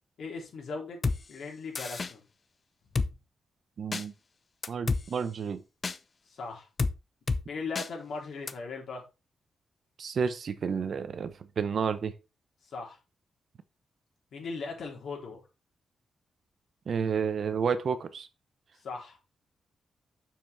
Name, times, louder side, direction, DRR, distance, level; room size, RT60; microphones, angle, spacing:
voice 1, 0.2-1.0 1.3-2.2 6.3-6.7 7.5-9.0 12.7-13.0 14.3-15.4 18.8-19.2, left 4 dB, 70° left, 3.7 m, -38 dB
Drum kit, 1.0-1.2 1.8-2.1 3.0-3.1 3.9-4.0 4.6-5.0 5.8-6.0 6.8-6.9 7.3-7.4 7.8-7.9 8.5-8.6, left 4 dB, 35° left, 0.7 m, -28 dB
voice 2, 3.8-4.1 4.7-5.6 10.0-12.1 16.9-18.3, right 6 dB, 55° right, 0.9 m, -30 dB
6.8 x 6.2 x 4.3 m
cardioid pair, 110°, 0 cm